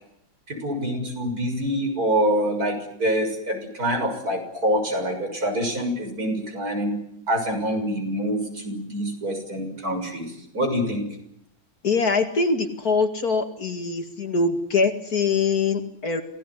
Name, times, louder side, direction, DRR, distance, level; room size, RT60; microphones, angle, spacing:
voice 1, 0.5-7.0 7.3-11.1, equal, 50° right, 4 dB, 7.2 m, -26 dB
voice 2, 11.8-16.2, left 4 dB, 50° left, 7 dB, 2.5 m, -23 dB
28.0 x 17.5 x 9.8 m, 0.75 s
omnidirectional pair, 2.1 m